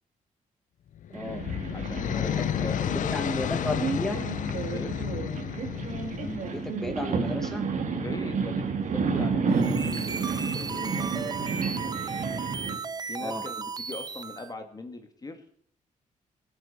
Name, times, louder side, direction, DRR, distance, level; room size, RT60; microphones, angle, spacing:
sound 1, 1.0-7.0, left 10 dB, 65° left, 0.6 m, -32 dB
voice 1, 1.1-1.5 2.2-4.2 6.2-7.7 13.2-13.5, left 1 dB, 5° left, 4 dB, 1.8 m, -34 dB
sound 2, 1.1-12.8, right 5 dB, 65° right, 2.5 m, -31 dB
voice 2, 1.7-2.9 3.3-3.4 4.7-4.9 7.9-11.3 13.0-15.5, left 3 dB, 25° left, 6 dB, 1.7 m, -41 dB
sound 3, 9.5-14.5, right 5 dB, 30° right, 0.5 m, -36 dB
24.0 x 8.7 x 4.2 m, 0.62 s
cardioid pair, 115°, 14 cm